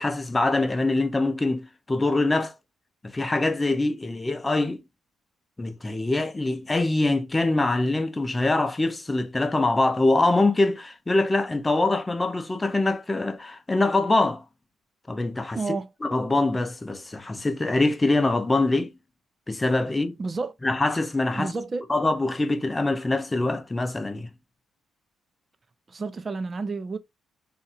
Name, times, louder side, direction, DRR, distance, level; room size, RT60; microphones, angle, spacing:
voice 1, 0.0-2.5 3.1-4.8 5.6-14.4 15.1-15.6 16.0-18.9 19.5-20.2 20.6-21.6 21.9-24.3, left 2 dB, 20° left, 0.6 m, -24 dB
voice 2, 15.5-15.9 20.2-20.5 21.3-21.9 25.9-27.0, right 3 dB, 35° right, 0.5 m, -30 dB
2.7 x 2.4 x 4.0 m
cardioid pair, 90°, 0 cm